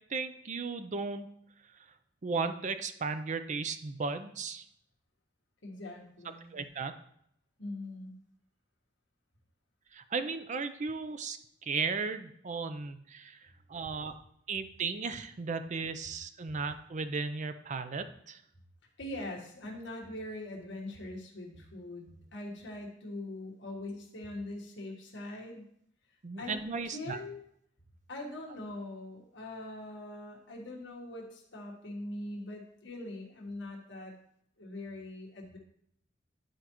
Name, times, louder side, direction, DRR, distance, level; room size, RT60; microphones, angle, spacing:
voice 1, 0.1-1.3 2.2-4.6 6.5-6.9 9.9-14.1 14.5-18.4 26.2-27.2, right 4 dB, 40° right, 10 dB, 0.5 m, -35 dB
voice 2, 5.6-6.6 7.6-8.1 19.0-25.7 26.4-26.6 26.9-27.4 28.1-34.1 34.6-35.6, left 1 dB, 70° left, -1 dB, 1.4 m, -42 dB
11.5 x 4.5 x 3.0 m, 0.71 s
head